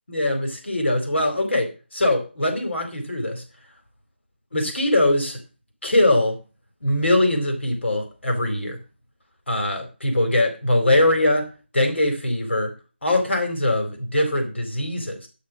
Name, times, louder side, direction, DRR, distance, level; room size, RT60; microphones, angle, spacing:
voice 1, 0.1-3.4 4.5-5.4 5.8-6.4 6.8-8.8 9.5-12.7 13.0-15.3, left 1 dB, 75° left, 4 dB, 4.3 m, -22 dB
11.5 x 5.1 x 7.5 m, 0.32 s
figure-of-eight pair, 165°, 6 cm